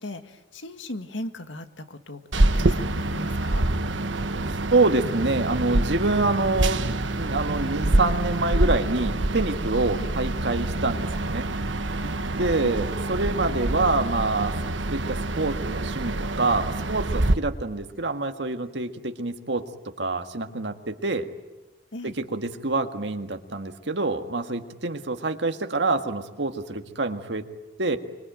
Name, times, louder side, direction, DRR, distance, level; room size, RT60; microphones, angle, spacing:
voice 1, 0.0-3.6 10.0-10.1 12.0-12.7 21.9-22.1, left 1 dB, 90° left, 8 dB, 1.9 m, -38 dB
sound 1, 2.3-17.3, right 2 dB, 85° right, 1.3 m, -26 dB
voice 2, 4.7-11.5 12.4-14.5 14.9-19.7 20.0-21.3 22.0-27.5 27.8-28.0, right 3 dB, 70° right, 6 dB, 1.7 m, -26 dB
25.0 x 24.5 x 9.1 m, 1.1 s
head